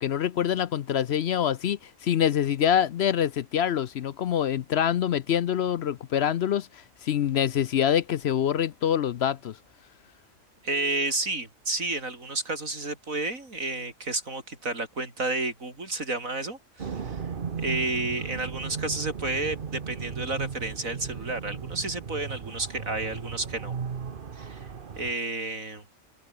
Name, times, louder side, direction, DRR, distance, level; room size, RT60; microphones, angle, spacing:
voice 1, 0.0-9.6, left 9 dB, 60° left, 0.8 m, -25 dB
voice 2, 10.6-17.2 17.6-23.7 24.3-24.7 25.0-25.8, right 2 dB, 90° right, 5.2 m, -31 dB
sound 1, 16.8-25.1, right 6 dB, 45° right, 1.2 m, -36 dB
omnidirectional pair, 1.4 m